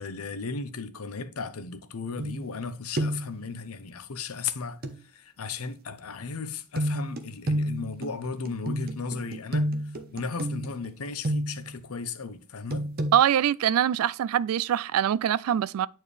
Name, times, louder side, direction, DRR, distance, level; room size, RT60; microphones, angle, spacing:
voice 1, 0.0-4.8 5.0-9.7 10.1-12.9, left 4 dB, 85° left, 0.7 m, -35 dB
sound 1, 2.2-2.7 3.0-3.4 4.8-5.0 6.8-11.8 12.7-13.1, right 1 dB, 45° right, 0.8 m, -30 dB
voice 2, 13.1-15.9, right 10 dB, 80° right, 0.3 m, -23 dB
8.9 x 4.5 x 3.2 m
head